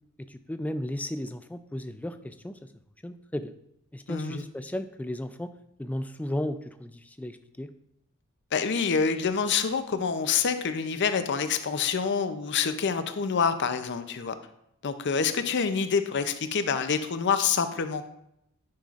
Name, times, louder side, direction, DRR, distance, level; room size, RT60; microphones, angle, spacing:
voice 1, 0.3-2.6 3.0-3.5 3.9-5.5 5.8-7.7, left 1 dB, 5° left, 10 dB, 0.3 m, -34 dB
voice 2, 4.1-4.4 8.5-14.3 14.8-18.0, left 6 dB, 55° left, 10 dB, 0.5 m, -27 dB
10.5 x 5.5 x 2.4 m, 0.78 s
head